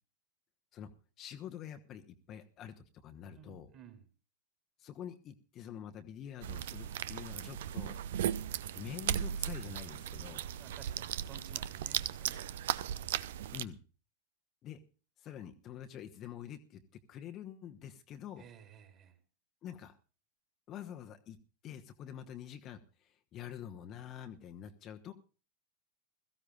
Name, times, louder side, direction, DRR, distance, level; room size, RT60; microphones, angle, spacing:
voice 1, 1.2-3.7 4.8-8.0 8.7-10.5 13.5-13.8 14.6-14.8 15.2-16.8 17.1-18.5 19.6-20.0 20.7-21.4 21.6-25.1, left 9 dB, 35° left, 6 dB, 1.2 m, -46 dB
voice 2, 3.3-4.0 10.6-12.7 18.4-19.2, right 8 dB, 35° right, 6 dB, 3.4 m, -55 dB
sound 1, 6.4-13.6, right 10 dB, 55° right, 0.6 m, -37 dB
21.5 x 14.5 x 2.4 m, 0.35 s
figure-of-eight pair, 90°, 0 cm